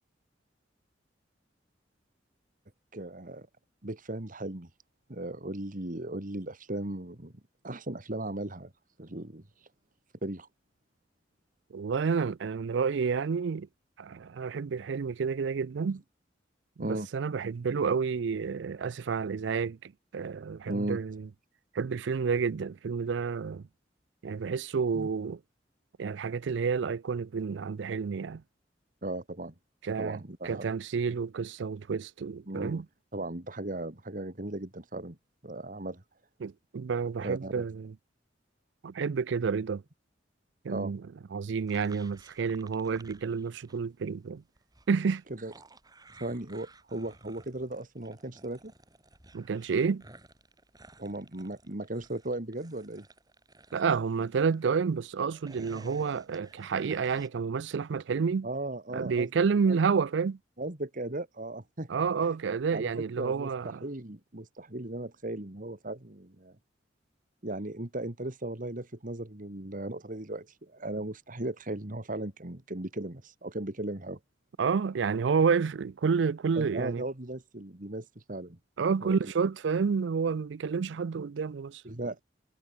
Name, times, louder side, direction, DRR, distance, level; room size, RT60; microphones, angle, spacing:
voice 1, 2.9-3.5 3.8-4.7 5.1-7.3 7.6-8.7 9.0-9.7 10.2-10.5 16.8-17.1 20.6-21.0 24.9-25.1 29.0-29.5 30.0-30.8 32.5-32.8 33.1-35.2 35.4-36.0 37.2-37.7 40.7-40.9 45.3-45.5 46.2-48.7 51.0-53.1 58.4-59.3 59.7-59.8 60.6-61.9 62.7-66.6 67.4-74.2 76.6-78.6 79.0-79.2 81.8-82.2, right 1 dB, 50° right, 2.1 m, -37 dB
voice 2, 11.7-13.7 14.0-16.0 16.8-21.3 21.7-23.6 24.2-25.4 26.0-28.4 29.8-32.8 36.4-37.9 38.8-39.8 40.6-41.0 41.3-44.4 44.9-45.2 49.3-50.0 53.7-58.5 58.9-60.4 61.9-63.8 74.6-77.0 78.8-81.8, right 5 dB, 75° right, 0.4 m, -29 dB
sound 1, 41.7-43.9 44.1-54.8 55.2-57.3, right 2 dB, 20° right, 5.5 m, -55 dB
head